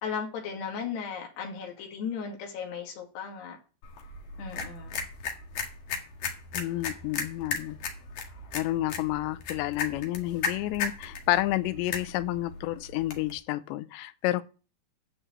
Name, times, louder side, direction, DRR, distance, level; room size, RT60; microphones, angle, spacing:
voice 1, 0.0-3.6 4.4-5.0, left 6 dB, 70° left, 4.4 m, -36 dB
sound 1, 3.8-13.3, left 5 dB, 55° left, 2.9 m, -36 dB
voice 2, 6.5-7.8 8.5-14.4, left 16 dB, 90° left, 2.9 m, -30 dB
12.5 x 4.8 x 7.9 m
omnidirectional pair, 4.9 m